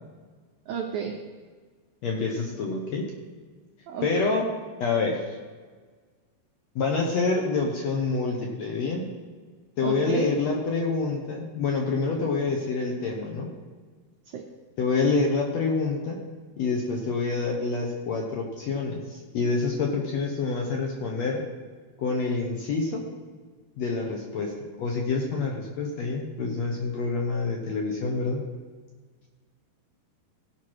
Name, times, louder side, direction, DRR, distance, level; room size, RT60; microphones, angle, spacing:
voice 1, 0.7-1.1 3.9-4.3 9.8-10.3 14.3-14.4, right 7 dB, 80° right, 1 dB, 1.7 m, -31 dB
voice 2, 2.0-3.1 4.0-4.5 4.8-5.2 6.7-9.1 9.8-13.5 14.8-16.2 16.6-21.4 22.0-23.0 23.8-24.5 24.8-28.4, left 4 dB, 75° left, 1 dB, 1.6 m, -27 dB
17.0 x 5.9 x 4.7 m, 1.5 s
omnidirectional pair, 4.5 m